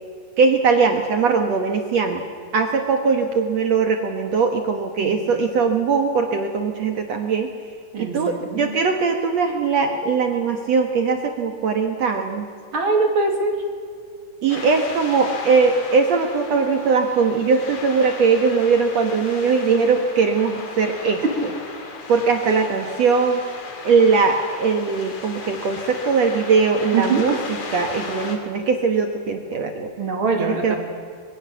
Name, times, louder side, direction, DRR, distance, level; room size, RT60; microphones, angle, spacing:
voice 1, 0.4-2.2 2.5-7.5 8.0-12.5 14.4-21.2 22.1-23.4 23.8-29.9 30.4-30.8, right 5 dB, 55° right, 4 dB, 2.0 m, -20 dB
voice 2, 5.0-5.4 7.9-8.8 12.7-13.6 21.2-21.3 26.9-27.3 30.0-30.8, right 4 dB, 35° right, 2 dB, 3.3 m, -23 dB
sound 1, 14.5-28.4, left 4 dB, 50° left, 3.6 m, -36 dB
25.5 x 22.0 x 7.2 m, 2.1 s
omnidirectional pair, 4.5 m